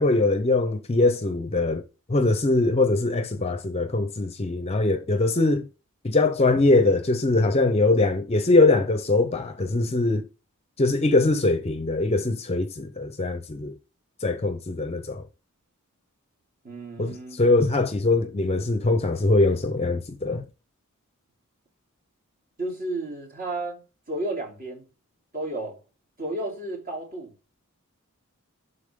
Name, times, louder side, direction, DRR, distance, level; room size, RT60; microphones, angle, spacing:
voice 1, 0.0-1.8 2.1-5.7 6.0-10.2 10.8-13.7 14.2-15.2 17.0-20.4, left 2 dB, 30° left, 0.6 m, -22 dB
voice 2, 16.6-17.4 22.6-23.8 24.1-24.8 25.3-25.8 26.2-27.3, right 2 dB, 40° right, 3.2 m, -32 dB
11.5 x 4.1 x 3.6 m
head